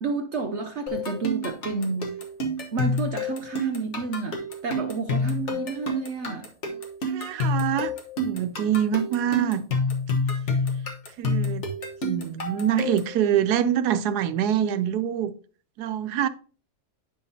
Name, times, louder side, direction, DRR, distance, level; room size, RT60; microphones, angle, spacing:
voice 1, 0.0-2.2 2.7-6.5, right 4 dB, 60° right, 0.8 m, -30 dB
sound 1, 0.9-13.2, left 2 dB, 50° left, 1.5 m, -28 dB
voice 2, 7.0-9.6 11.2-11.6 12.0-15.3 15.8-16.3, right 10 dB, 90° right, 1.1 m, -25 dB
9.5 x 5.6 x 2.7 m
omnidirectional pair, 1.6 m